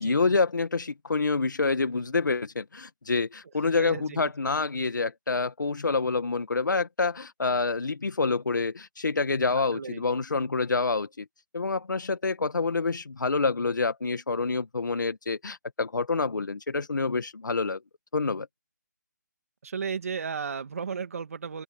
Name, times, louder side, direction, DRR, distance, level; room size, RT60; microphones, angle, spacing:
voice 1, 0.0-11.2 11.5-17.8 18.1-18.5, left 4 dB, 80° left, 1.5 m, -27 dB
voice 2, 3.6-4.3 9.7-10.0 19.6-21.6, right 6 dB, 50° right, 2.3 m, -34 dB
open air
figure-of-eight pair, 165°, 10 cm